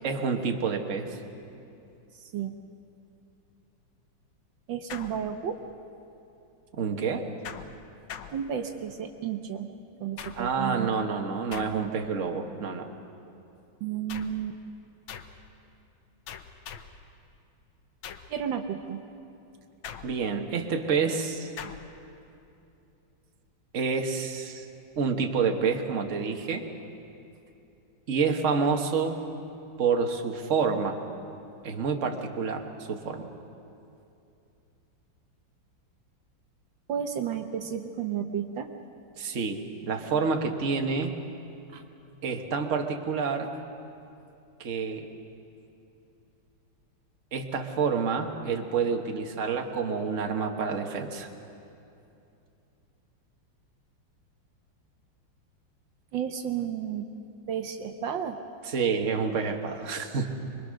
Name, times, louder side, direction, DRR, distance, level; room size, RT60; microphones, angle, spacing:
voice 1, 0.0-1.2 6.8-7.2 10.4-12.9 20.0-21.5 23.7-24.7 25.0-26.6 28.1-29.2 29.8-31.0 31.6-33.3 39.2-41.1 42.2-43.5 44.6-45.1 47.3-51.3 58.7-60.3, right 5 dB, 40° right, 4 dB, 1.5 m, -28 dB
voice 2, 2.1-2.5 4.7-5.6 8.3-9.7 10.0-10.9 13.8-14.6 18.3-19.0 36.9-38.7 41.7-41.8 56.1-57.1 57.5-58.4, right 8 dB, 70° right, 6 dB, 1.6 m, -32 dB
sound 1, 4.9-5.7 7.4-9.0 10.2-10.7 11.5-12.1 14.1-14.5 15.1-15.5 16.3-17.1 18.0-18.4 19.8-20.5 21.6-22.0, left 7 dB, 80° left, 1.7 m, -43 dB
25.5 x 22.5 x 6.4 m, 2.7 s
omnidirectional pair, 2.2 m